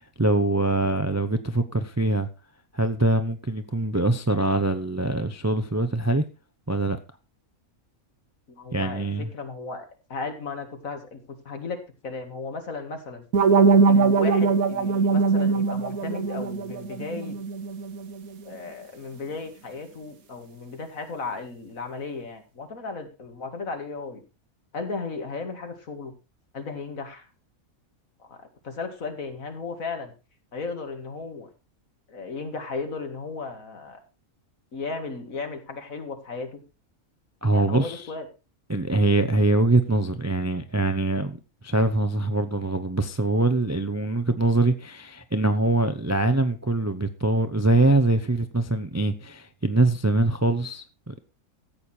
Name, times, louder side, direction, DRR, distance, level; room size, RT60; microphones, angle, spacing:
voice 1, 0.2-2.3 2.7-6.2 6.7-7.0 8.7-9.3 37.4-38.0 38.7-41.4 41.6-51.2, right 2 dB, 20° right, 0.5 m, -23 dB
voice 2, 8.5-9.1 9.3-11.2 11.5-11.8 12.0-13.2 13.9-17.4 18.5-24.2 24.7-26.1 26.5-27.2 28.3-30.1 30.5-31.5 32.1-34.0 34.7-36.6 37.5-38.3, left 4 dB, 70° left, 2.5 m, -35 dB
sound 1, 13.3-18.3, right 4 dB, 85° right, 1.6 m, -21 dB
14.0 x 8.5 x 4.4 m
omnidirectional pair, 1.5 m